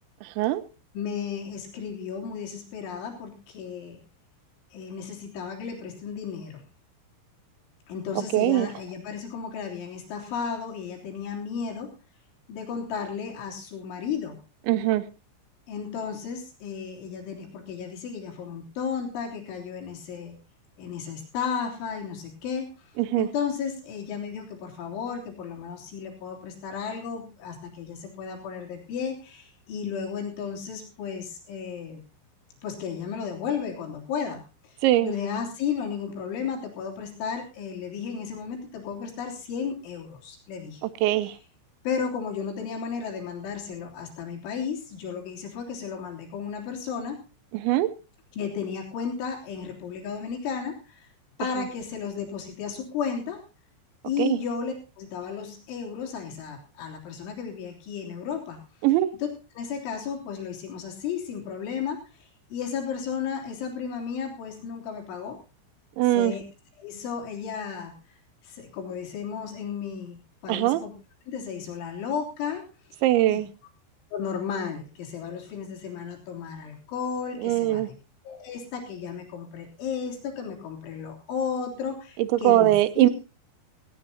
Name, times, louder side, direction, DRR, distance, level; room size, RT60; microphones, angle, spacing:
voice 1, 0.9-4.0 4.7-6.6 7.9-11.9 12.5-14.4 15.7-20.4 20.8-22.7 23.2-32.0 32.6-40.8 41.2-41.4 41.9-47.2 48.3-51.1 51.4-53.4 54.1-58.6 59.2-59.3 59.5-62.3 62.5-65.4 66.1-66.4 66.8-67.9 68.4-70.2 70.4-70.9 71.3-72.6 72.9-73.5 74.1-77.9 78.3-83.1, left 6 dB, 85° left, 1 dB, 5.8 m, -34 dB
voice 2, 8.3-8.7 14.7-15.0 23.0-23.3 34.8-35.1 41.0-41.3 47.5-47.9 54.2-54.4 58.8-59.1 66.0-66.3 70.5-70.8 73.0-73.5 77.4-77.9 82.3-83.1, right 15 dB, 85° right, 15 dB, 3.2 m, -21 dB
17.5 x 17.0 x 2.8 m, 0.31 s
omnidirectional pair, 5.3 m